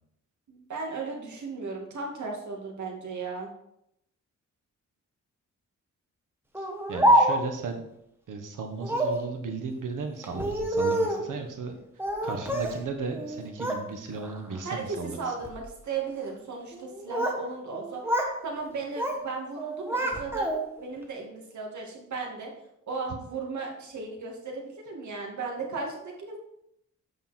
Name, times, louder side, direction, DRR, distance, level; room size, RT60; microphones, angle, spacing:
voice 1, 0.5-3.5 14.6-20.5 20.8-22.5 22.9-26.4, right 4 dB, 70° right, 0 dB, 2.3 m, -36 dB
Speech, 6.5-7.6 8.8-9.2 10.2-11.3 12.0-12.8 13.1-13.8 14.2-14.6 15.3-15.6 16.7-17.4 17.7-18.4 18.6-19.2 19.6-20.8, right 1 dB, 10° right, 1.3 m, -27 dB
voice 2, 6.6-7.9 8.3-11.8 12.2-15.3, right 4 dB, 85° right, 4 dB, 1.5 m, -35 dB
8.6 x 5.7 x 4.4 m, 0.78 s
wide cardioid pair, 115°, 30 cm